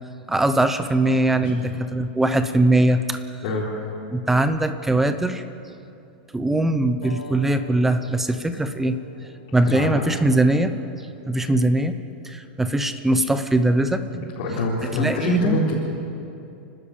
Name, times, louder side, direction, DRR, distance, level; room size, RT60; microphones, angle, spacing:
voice 1, 0.3-3.4 4.1-5.4 6.3-10.7 11.3-12.0 12.2-14.0 14.9-15.6, right 2 dB, 5° right, 10 dB, 0.8 m, -21 dB
voice 2, 1.4-1.7 3.4-3.7 9.7-10.0 14.4-15.7, left 2 dB, 45° left, -7 dB, 4.3 m, -25 dB
sound 1, 7.0-12.1, left 3 dB, 90° left, 6.1 m, -45 dB
29.5 x 12.5 x 8.6 m, 2.7 s
supercardioid pair, 165°, 6 cm